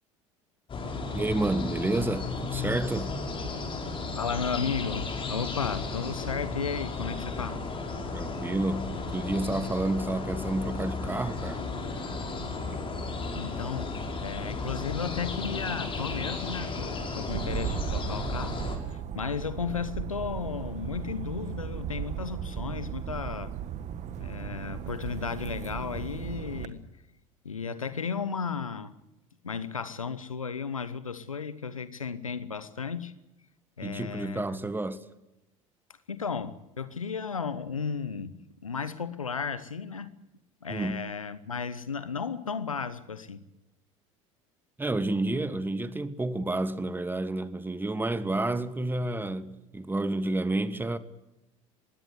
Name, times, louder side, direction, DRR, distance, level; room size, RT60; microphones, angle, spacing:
sound 1, 0.7-18.8, left 3 dB, 30° left, 5.9 m, -34 dB
voice 1, 1.1-3.2 8.1-11.6 33.8-35.0 40.7-41.1 44.8-51.0, right 2 dB, 10° right, 1.5 m, -30 dB
voice 2, 4.1-7.6 13.3-18.6 18.9-23.5 24.2-26.8 27.4-28.9 29.4-33.1 33.8-34.6 36.1-40.1 40.6-43.4, left 6 dB, 90° left, 1.0 m, -34 dB
sound 2, 17.2-26.7, right 10 dB, 45° right, 1.7 m, -36 dB
21.5 x 17.0 x 8.1 m
figure-of-eight pair, 70°, 17 cm